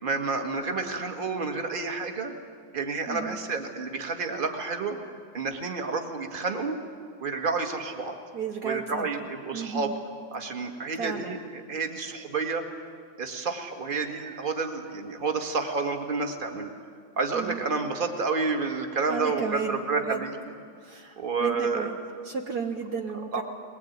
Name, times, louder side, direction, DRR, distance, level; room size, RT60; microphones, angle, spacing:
voice 1, 0.0-2.3 2.7-5.0 5.3-6.8 7.2-8.2 8.6-9.9 10.3-12.6 13.2-16.7 17.2-20.3 21.2-21.9 23.3-23.4, right 4 dB, 30° right, 4 dB, 1.7 m, -30 dB
voice 2, 3.1-3.4 8.3-9.1 9.5-9.9 11.0-11.4 17.3-17.6 19.1-20.3 20.8-22.0 22.2-23.4, right 5 dB, 60° right, 3 dB, 1.6 m, -33 dB
21.5 x 21.0 x 9.3 m, 2.1 s
omnidirectional pair, 2.1 m